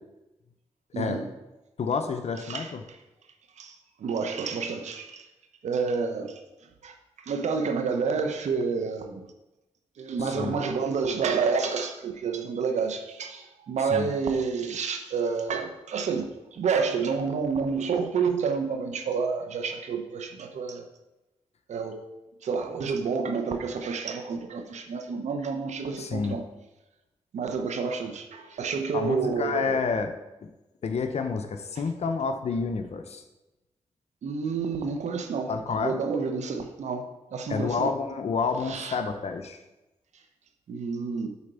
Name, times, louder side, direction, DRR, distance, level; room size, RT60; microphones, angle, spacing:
voice 1, 0.9-1.3 2.5-3.0 3.6-5.3 5.6-6.4 6.8-6.9 7.3-9.2 10.0-16.2 16.5-20.9 21.7-22.1 22.4-26.4 27.3-29.8 34.2-35.5 35.8-37.9 38.7-39.0 40.7-41.3, right 5 dB, 80° right, 6 dB, 1.0 m, -29 dB
voice 2, 1.8-2.8 10.2-10.6 13.9-14.1 26.0-26.4 28.9-30.1 30.8-33.2 35.5-36.0 37.5-39.6, left 5 dB, 65° left, 6 dB, 0.8 m, -29 dB
8.3 x 4.4 x 6.9 m, 1.0 s
cardioid pair, 60°, 12 cm